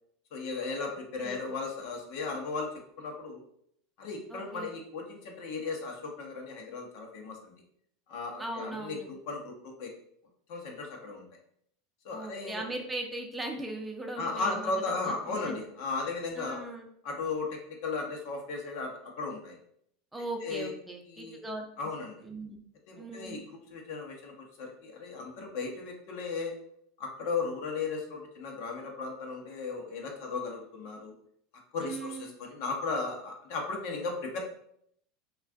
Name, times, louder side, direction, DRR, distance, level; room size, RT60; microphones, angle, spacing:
voice 1, 0.3-2.7 3.0-3.4 4.0-7.5 8.1-9.9 10.5-11.3 12.0-12.6 14.2-16.6 17.0-19.6 20.4-20.7 21.1-21.4 21.8-22.2 22.9-26.5 27.0-31.1 31.7-34.4, left 4 dB, 65° left, 1 dB, 0.7 m, -36 dB
voice 2, 4.3-4.7 8.4-9.1 12.1-14.7 15.0-15.6 16.4-16.9 20.1-21.9 22.2-22.6 23.0-23.4 31.8-32.3, right 2 dB, 10° right, 2 dB, 0.5 m, -39 dB
2.4 x 2.3 x 3.4 m, 0.69 s
hypercardioid pair, 85°, 0 cm